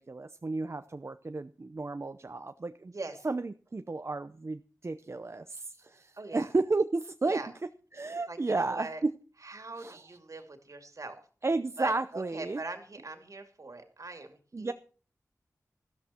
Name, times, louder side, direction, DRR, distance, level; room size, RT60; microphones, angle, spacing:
voice 1, 0.0-2.9 3.2-7.4 7.9-9.1 9.8-10.1 11.4-12.6 14.5-14.7, right 3 dB, 45° right, 10 dB, 0.7 m, -32 dB
voice 2, 2.9-3.3 6.2-6.5 7.2-7.5 8.1-9.0 9.4-11.2 11.8-14.7, right 3 dB, 65° right, 6 dB, 2.6 m, -42 dB
13.5 x 13.0 x 4.4 m, 0.40 s
wide cardioid pair, 70°, 6 cm